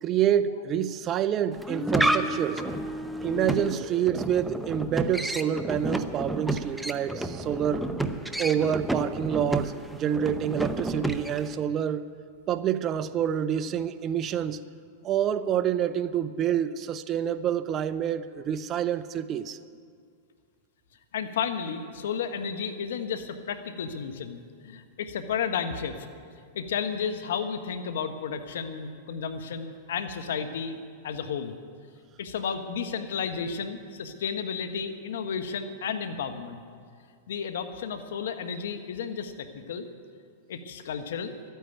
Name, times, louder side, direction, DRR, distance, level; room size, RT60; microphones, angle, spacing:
voice 1, 0.0-2.6 3.2-7.9 8.4-12.1 12.5-14.6 15.0-19.6, right 9 dB, 35° right, 0.6 m, -27 dB
sound 1, 1.5-11.5, right 1 dB, 5° right, 0.7 m, -30 dB
voice 2, 21.1-26.1 26.5-30.8 31.0-31.5 32.2-36.6 37.3-39.9 40.5-41.3, left 6 dB, 75° left, 1.2 m, -32 dB
13.0 x 9.2 x 9.1 m
hypercardioid pair, 115°, 0 cm